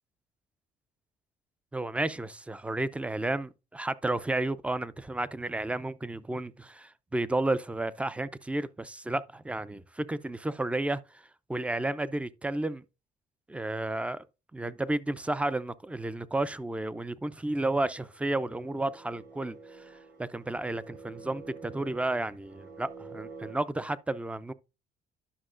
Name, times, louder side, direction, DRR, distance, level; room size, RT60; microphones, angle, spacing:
voice 1, 1.7-11.2 11.5-12.8 13.5-14.3 14.5-24.5, right 2 dB, 5° right, 0.4 m, -32 dB
sound 1, 17.6-23.5, right 4 dB, 65° right, 4.0 m, -48 dB
11.0 x 6.1 x 2.5 m
cardioid pair, 110°, 17 cm